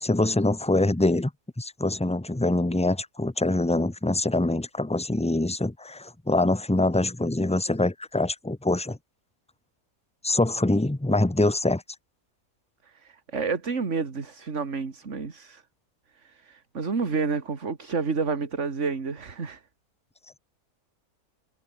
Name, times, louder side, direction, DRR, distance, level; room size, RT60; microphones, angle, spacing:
voice 1, 0.0-1.3 1.6-9.0 10.2-11.8, left 2 dB, 5° left, 0.5 m, -24 dB
voice 2, 12.9-15.6 16.2-19.6, right 4 dB, 50° right, 2.5 m, -30 dB
omnidirectional pair, 1.6 m